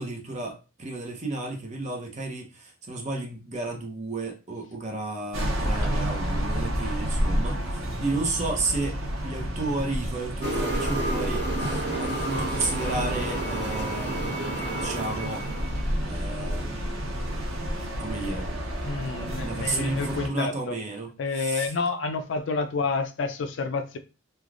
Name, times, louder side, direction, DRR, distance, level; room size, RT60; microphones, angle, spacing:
voice 1, 0.0-9.0 9.2-15.5 16.0-17.2 18.0-18.5 19.2-21.7, right 2 dB, 35° right, 0.7 m, -32 dB
sound 1, 5.3-20.3, equal, 90° right, 0.8 m, -30 dB
sound 2, 10.4-15.9, right 1 dB, 55° right, 1.0 m, -31 dB
voice 2, 18.8-20.8 21.2-24.0, left 4 dB, 65° left, 0.4 m, -29 dB
3.2 x 2.3 x 2.4 m
head